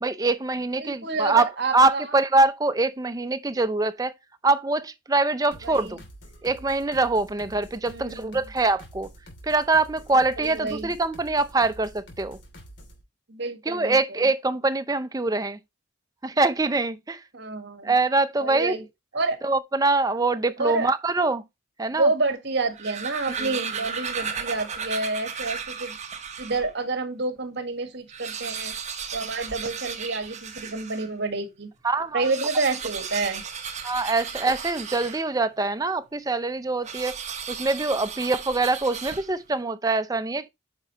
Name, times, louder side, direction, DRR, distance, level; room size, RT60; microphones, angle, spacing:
voice 1, 0.0-4.1 4.4-6.0 6.4-9.1 9.4-12.4 13.7-15.6 16.2-17.2 17.8-18.8 19.4-21.4 21.8-22.1 23.4-23.5 31.8-32.3 33.8-37.2 37.5-40.5, right 3 dB, 20° right, 0.6 m, -24 dB
voice 2, 0.8-2.0 5.6-6.0 7.9-8.4 10.4-10.9 13.3-14.2 17.3-17.9 18.4-18.8 19.1-19.4 20.6-20.9 21.9-26.0 26.4-28.7 29.1-31.7 32.1-33.4, right 3 dB, 60° right, 1.7 m, -28 dB
sound 1, 5.5-13.0, equal, 60° left, 2.8 m, -47 dB
sound 2, 22.6-26.7 27.3-27.4 27.6-27.7 28.0-31.1 32.1-35.5 36.8-39.5, right 6 dB, 35° right, 1.1 m, -35 dB
8.9 x 5.4 x 3.0 m
head